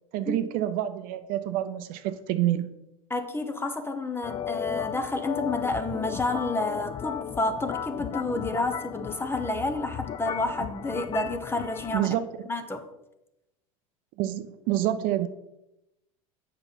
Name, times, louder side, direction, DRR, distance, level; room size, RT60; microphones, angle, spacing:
voice 1, 0.1-2.7 11.9-12.3 14.2-15.3, right 13 dB, 55° right, 11 dB, 0.6 m, -27 dB
voice 2, 3.1-12.2 12.5-12.8, left 2 dB, 15° left, 8 dB, 0.8 m, -30 dB
sound 1, 4.2-12.0, left 9 dB, 30° left, 0.4 m, -35 dB
7.9 x 5.6 x 4.1 m, 0.90 s
hypercardioid pair, 100°, 18 cm